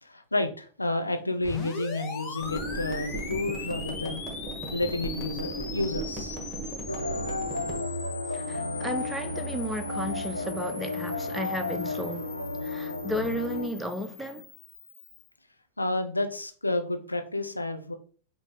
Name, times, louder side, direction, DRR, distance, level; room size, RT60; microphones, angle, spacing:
voice 1, 0.0-4.2 4.7-6.4 15.8-17.9, left 2 dB, 85° left, 0.5 m, -30 dB
sound 1, 1.4-15.3, left 5 dB, 30° left, 0.9 m, -41 dB
sound 2, 2.4-7.8, right 2 dB, 15° right, 1.5 m, -37 dB
sound 3, 6.9-13.7, left 2 dB, 90° right, 0.4 m, -33 dB
voice 2, 8.3-12.3 12.6-14.5, equal, ahead, 0.6 m, -34 dB
5.3 x 2.7 x 3.7 m
figure-of-eight pair, 95°, 0 cm